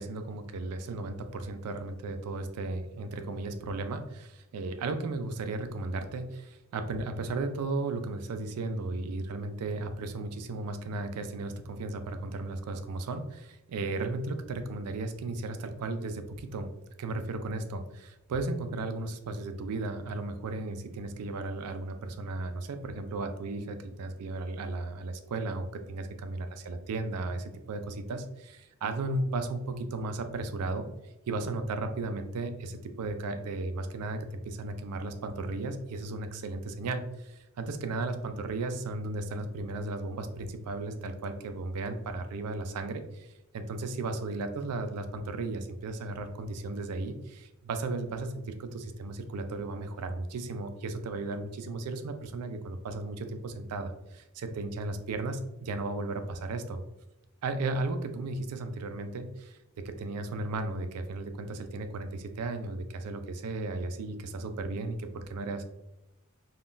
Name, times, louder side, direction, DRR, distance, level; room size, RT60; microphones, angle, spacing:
voice 1, 0.0-16.7 17.0-30.9 31.3-56.8 57.4-59.6 59.8-65.6, right 2 dB, 90° right, 8 dB, 0.4 m, -35 dB
3.6 x 2.3 x 2.5 m, 0.92 s
head